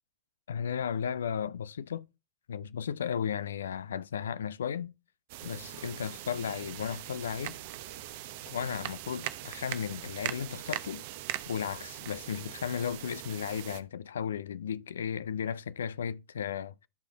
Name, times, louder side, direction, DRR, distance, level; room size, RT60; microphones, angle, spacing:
voice 1, 0.5-2.1 2.5-4.9 5.4-7.6 8.5-11.0 11.5-16.9, left 8 dB, 65° left, 0.4 m, -35 dB
sound 1, 5.3-13.8, right 14 dB, 50° right, 0.8 m, -41 dB
12.5 x 4.9 x 3.9 m
figure-of-eight pair, 90°, 0 cm